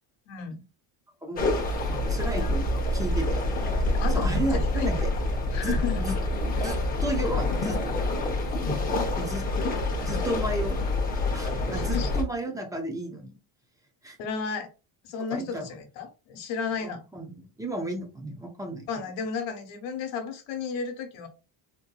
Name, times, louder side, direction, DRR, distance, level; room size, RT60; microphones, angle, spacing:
voice 1, 0.3-0.6 3.9-5.0 5.5-6.0 11.7-12.1 14.2-14.7 15.0-17.0 18.9-21.3, left 5 dB, 75° left, 6 dB, 1.1 m, -33 dB
voice 2, 1.2-1.6 1.9-3.4 4.1-5.1 5.6-6.1 6.6-7.8 9.2-9.4 10.1-10.8 11.3-13.3 14.0-14.2 15.3-15.7 16.8-18.9, right 1 dB, 10° right, 3 dB, 0.3 m, -33 dB
sound 1, 1.4-12.2, left 2 dB, 20° left, 0.7 m, -27 dB
3.9 x 2.7 x 2.3 m, 0.30 s
cardioid pair, 160°, 46 cm